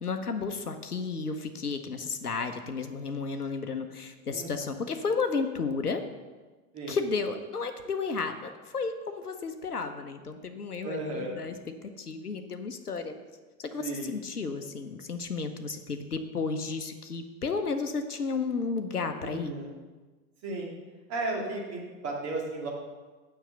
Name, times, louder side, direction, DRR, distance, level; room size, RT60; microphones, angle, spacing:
voice 1, 0.0-6.0 6.9-11.5 11.8-13.1 13.6-19.5, left 4 dB, 85° left, 8 dB, 0.8 m, -33 dB
voice 2, 4.3-4.7 6.7-7.0 10.8-11.4 13.8-14.1 19.2-19.7 20.4-20.7 21.1-22.7, right 2 dB, 35° right, -1 dB, 2.3 m, -34 dB
7.3 x 5.8 x 6.6 m, 1.3 s
figure-of-eight pair, 85°, 44 cm